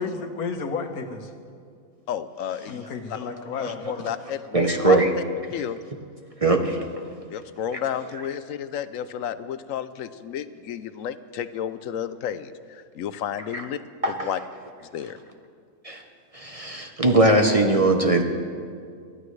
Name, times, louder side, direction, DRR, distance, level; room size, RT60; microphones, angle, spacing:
voice 1, 0.0-1.3 2.7-4.1, left 5 dB, 85° left, 5 dB, 1.6 m, -32 dB
voice 2, 2.1-2.9 3.6-3.8 4.0-5.2 5.5-5.8 7.3-13.8 14.1-14.4 14.8-15.2, left 9 dB, 70° left, 13 dB, 0.9 m, -31 dB
voice 3, 4.5-5.1 6.4-6.8 13.5-13.6 14.0-14.3 15.8-16.0 16.3-18.2, right 2 dB, 30° right, 4 dB, 0.8 m, -20 dB
22.0 x 14.0 x 3.2 m, 2.2 s
omnidirectional pair, 1.5 m